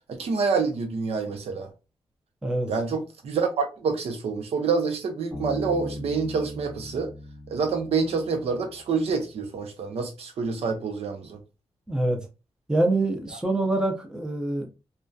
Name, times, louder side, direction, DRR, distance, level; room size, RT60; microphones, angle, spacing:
voice 1, 0.1-1.7 2.7-7.1 7.5-11.4, right 5 dB, 80° right, 0.7 m, -27 dB
Bass guitar, 5.3-8.8, left 1 dB, 10° left, 0.9 m, -39 dB
voice 2, 11.9-12.2 12.7-14.7, right 2 dB, 5° right, 0.4 m, -25 dB
2.6 x 2.2 x 2.2 m
wide cardioid pair, 180°, 10 cm